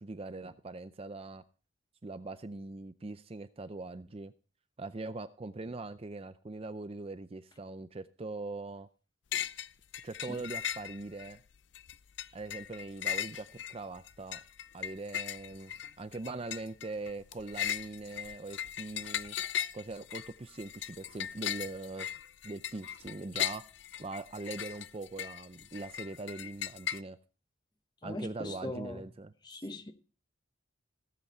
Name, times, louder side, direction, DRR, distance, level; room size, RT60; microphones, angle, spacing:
voice 1, 0.0-1.4 2.0-4.3 4.8-8.9 10.0-11.4 12.3-14.4 14.7-15.7 16.0-19.4 19.7-22.1 22.4-23.6 24.0-27.2 28.0-29.3, right 3 dB, 30° right, 0.5 m, -42 dB
sound 1, 9.3-9.7 9.9-11.3 11.7-27.0, left 10 dB, 60° left, 0.5 m, -38 dB
voice 2, 28.0-29.0 29.4-29.9, left 1 dB, 20° left, 1.0 m, -40 dB
16.5 x 8.1 x 4.2 m
head